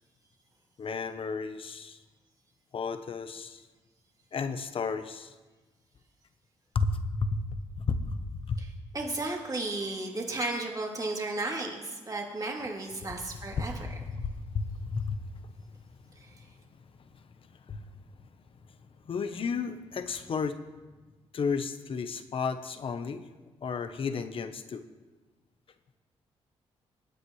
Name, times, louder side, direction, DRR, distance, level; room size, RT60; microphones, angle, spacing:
voice 1, 0.8-2.0 2.7-3.6 4.3-5.3 6.7-8.6 13.6-15.2 17.7-17.8 19.1-20.6 21.3-23.2 23.6-24.8, left 4 dB, 55° left, 10 dB, 1.0 m, -33 dB
voice 2, 8.9-13.8 16.2-16.3, right 2 dB, 35° right, -1 dB, 3.1 m, -34 dB
20.5 x 9.0 x 3.2 m, 1.2 s
supercardioid pair, 60°, 11 cm